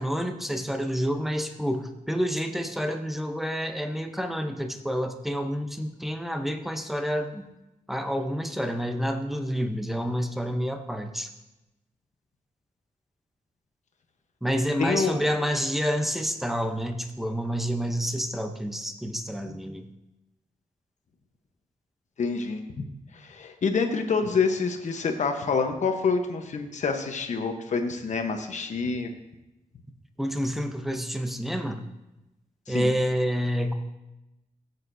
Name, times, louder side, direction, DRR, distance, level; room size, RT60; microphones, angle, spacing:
voice 1, 0.0-7.4 7.9-11.3 14.4-19.9 30.2-31.8 32.7-33.7, equal, ahead, 6 dB, 0.7 m, -28 dB
voice 2, 14.8-15.2 22.2-22.8 23.1-29.1 32.7-32.9, left 4 dB, 60° left, 5 dB, 1.0 m, -27 dB
15.5 x 8.1 x 2.7 m, 0.96 s
wide cardioid pair, 165°, 14 cm